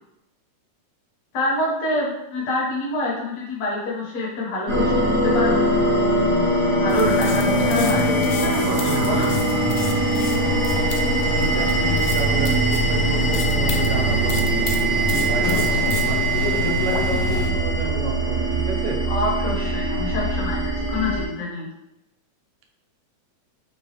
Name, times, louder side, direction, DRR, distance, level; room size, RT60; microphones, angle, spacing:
voice 1, 1.3-5.0 5.2-5.7 6.8-8.1 8.4-9.3 19.1-21.7, left 1 dB, 60° left, -5 dB, 2.1 m, -26 dB
sound 1, 4.7-21.2, right 2 dB, 65° right, 0.8 m, -22 dB
sound 2, 6.9-17.5, left 6 dB, 85° left, 2.2 m, -28 dB
voice 2, 8.9-9.3 11.3-19.0, right 2 dB, 85° right, 1 dB, 2.1 m, -31 dB
5.4 x 2.5 x 3.2 m, 0.88 s
omnidirectional pair, 3.7 m